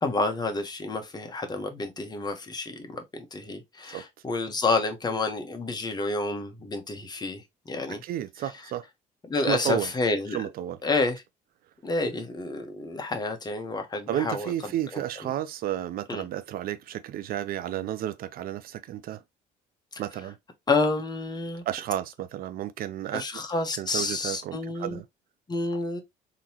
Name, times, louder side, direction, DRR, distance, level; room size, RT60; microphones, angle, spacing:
voice 1, 0.0-8.0 9.3-10.4 10.8-11.2 11.8-14.5 14.9-15.0 16.1-16.2 19.9-20.0 20.7-21.6 23.1-25.0 25.5-26.0, left 3 dB, 25° left, 1.0 m, -29 dB
voice 2, 7.9-8.8 9.4-9.9 10.3-10.8 14.1-19.2 20.0-20.4 21.7-23.2 23.8-25.0, right 12 dB, 60° right, 0.4 m, -32 dB
3.7 x 2.9 x 2.9 m
cardioid pair, 110°, 17 cm